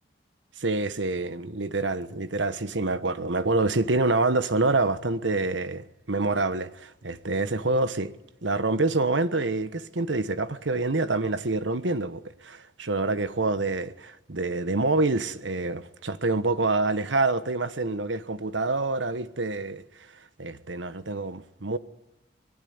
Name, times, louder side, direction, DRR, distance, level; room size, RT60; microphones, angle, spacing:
voice 1, 0.6-8.1 8.4-19.8 20.4-21.8, right 3 dB, 85° right, 1.3 m, -26 dB
24.5 x 19.5 x 9.6 m
head